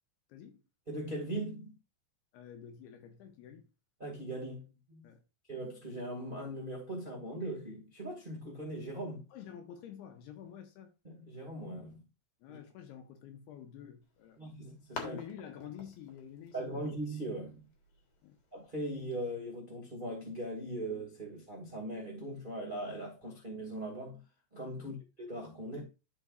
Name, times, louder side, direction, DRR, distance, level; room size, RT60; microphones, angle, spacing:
voice 1, 0.3-0.6 2.3-3.7 5.0-5.2 9.3-10.9 12.4-14.4 15.0-16.8 18.2-18.4 24.8-25.0, left 9 dB, 75° left, 2.7 m, -49 dB
voice 2, 0.9-1.8 4.0-5.1 5.5-9.2 11.0-12.0 12.5-12.6 14.4-15.2 16.5-17.6 18.5-24.2 24.5-25.8, right 1 dB, 35° right, 0.8 m, -40 dB
sound 1, 14.0-19.1, left 4 dB, 50° left, 2.0 m, -50 dB
13.0 x 4.5 x 2.5 m
omnidirectional pair, 5.0 m